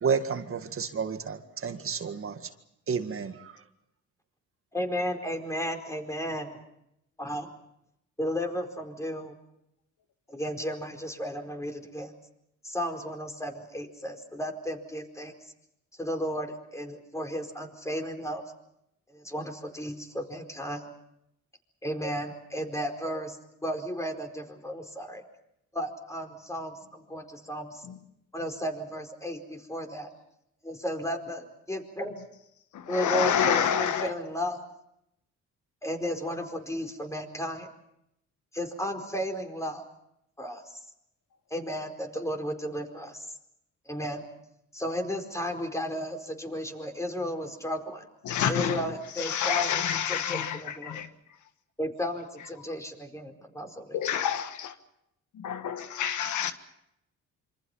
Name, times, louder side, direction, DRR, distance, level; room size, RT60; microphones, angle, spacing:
voice 1, 0.0-2.5 2.9-3.6, right 6 dB, 45° right, 2.0 m, -31 dB
voice 2, 4.7-6.6 7.2-7.5 8.2-9.3 10.3-12.1 12.6-15.3 16.0-18.4 19.1-20.9 21.8-25.2 25.7-27.8 28.3-30.1 30.6-32.2 32.9-34.6 35.8-37.7 38.5-39.8 40.4-40.8 41.5-43.3 43.9-44.2 44.7-48.1 48.5-49.8 50.1-51.0 51.8-54.0, equal, 10° left, 4.7 m, -34 dB
voice 3, 32.7-34.1 48.2-48.8 49.2-51.1 53.9-54.8 55.3-56.5, left 9 dB, 75° left, 1.6 m, -28 dB
27.0 x 25.5 x 5.7 m
cardioid pair, 90°, 30 cm